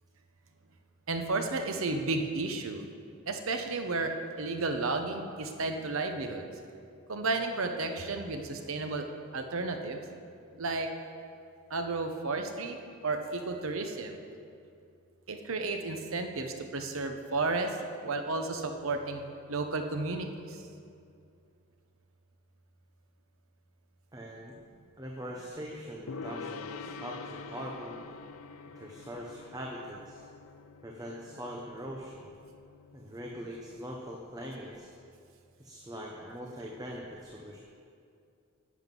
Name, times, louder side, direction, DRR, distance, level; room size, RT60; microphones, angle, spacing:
voice 1, 1.1-2.8 3.3-6.5 7.1-9.1 9.3-10.0 10.6-10.9 11.7-12.8 13.0-14.2 15.3-17.8 18.0-20.6, right 3 dB, 70° right, 5 dB, 0.9 m, -32 dB
voice 2, 24.1-24.5 25.0-28.0 28.7-30.2 30.8-32.3 32.9-34.9 35.6-37.6, equal, 20° right, -1 dB, 0.8 m, -42 dB
Gong, 26.1-33.5, left 5 dB, 90° left, 0.5 m, -46 dB
11.0 x 7.9 x 5.4 m, 2.4 s
head